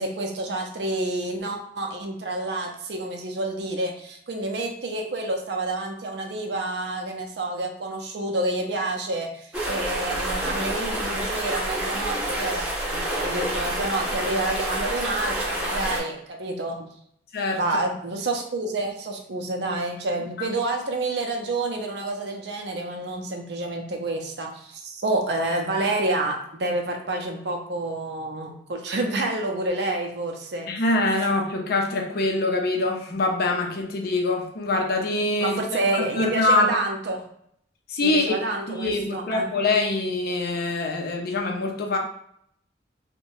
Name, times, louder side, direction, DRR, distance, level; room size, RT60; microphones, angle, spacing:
voice 1, 0.0-16.8 17.6-30.7 35.4-37.2 38.0-39.4, right 2 dB, 65° right, 2 dB, 0.5 m, -28 dB
sound 1, 9.5-16.0, right 1 dB, 5° right, 0.6 m, -28 dB
voice 2, 30.7-35.6 35.9-36.8 37.9-38.3 38.7-42.0, left 2 dB, 55° left, 2 dB, 0.5 m, -24 dB
2.7 x 2.1 x 3.0 m, 0.68 s
head